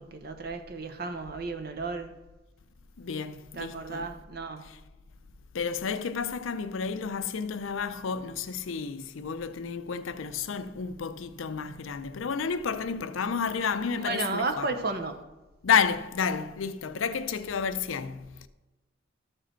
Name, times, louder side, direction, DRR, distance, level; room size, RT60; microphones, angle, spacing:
voice 1, 0.0-2.1 3.5-4.6 14.0-15.2, right 3 dB, 50° right, 0.9 m, -33 dB
voice 2, 3.0-4.1 4.6-4.8 5.5-14.7 15.6-18.5, left 6 dB, 80° left, 0.5 m, -31 dB
13.0 x 4.8 x 4.5 m
head